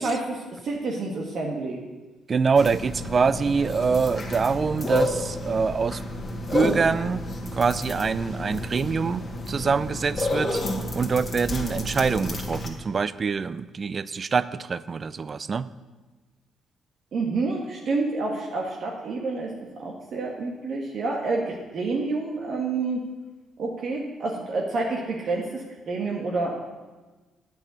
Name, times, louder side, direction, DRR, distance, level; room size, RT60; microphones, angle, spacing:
voice 1, 0.0-1.8 17.1-19.5 19.8-23.0 23.6-26.6, right 3 dB, 60° right, -1 dB, 1.4 m, -28 dB
voice 2, 2.3-6.0 6.5-10.6 10.9-15.7, right 5 dB, 40° right, 17 dB, 0.4 m, -25 dB
sound 1, 2.6-12.7, left 1 dB, 35° left, 1.8 m, -30 dB
9.0 x 5.5 x 8.1 m, 1.2 s
cardioid pair, 75°, 0 cm